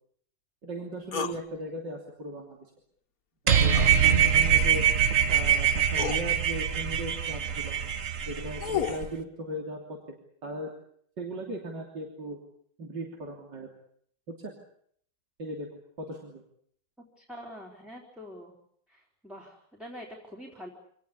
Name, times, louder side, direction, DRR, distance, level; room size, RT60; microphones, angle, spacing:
voice 1, 0.6-2.7 3.4-4.8 5.3-7.8 8.3-10.0 10.4-10.7 11.2-12.4 12.8-13.7 14.3-14.6 15.4-16.4, right 1 dB, 85° right, 1 dB, 3.8 m, -38 dB
sound 1, 1.1-1.4 3.7-4.0 5.3-5.4 5.9-6.2 8.2-9.1, left 8 dB, 55° left, 1.7 m, -32 dB
sound 2, 3.5-9.1, right 8 dB, 50° right, 1.7 m, -24 dB
voice 2, 17.2-18.5 18.9-20.7, equal, ahead, -2 dB, 3.9 m, -45 dB
27.0 x 18.5 x 8.6 m, 0.65 s
omnidirectional pair, 1.9 m